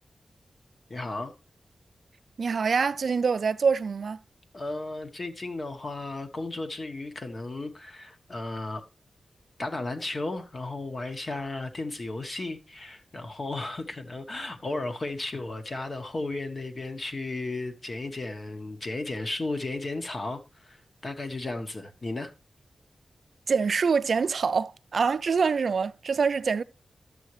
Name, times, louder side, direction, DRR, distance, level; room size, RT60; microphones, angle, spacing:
voice 1, 0.9-1.3 4.5-8.8 9.6-22.3, left 2 dB, 35° left, 1.1 m, -34 dB
voice 2, 2.4-4.2 23.5-26.6, right 5 dB, 60° right, 0.4 m, -25 dB
11.0 x 7.7 x 3.1 m
wide cardioid pair, 170°, 0 cm